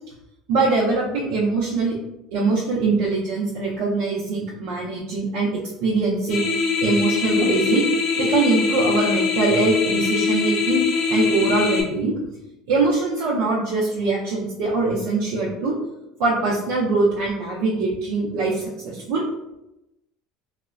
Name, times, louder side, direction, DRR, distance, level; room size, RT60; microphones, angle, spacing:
voice 1, 0.5-2.0 2.3-5.5 5.8-6.4 6.8-7.9 8.2-10.8 11.1-12.1 12.7-15.8 16.2-19.2, right 3 dB, 75° right, -5 dB, 0.6 m, -22 dB
sound 1, 6.3-11.8, left 4 dB, 45° left, 0.6 m, -22 dB
4.0 x 2.1 x 2.4 m, 0.91 s
cardioid pair, 160°, 0 cm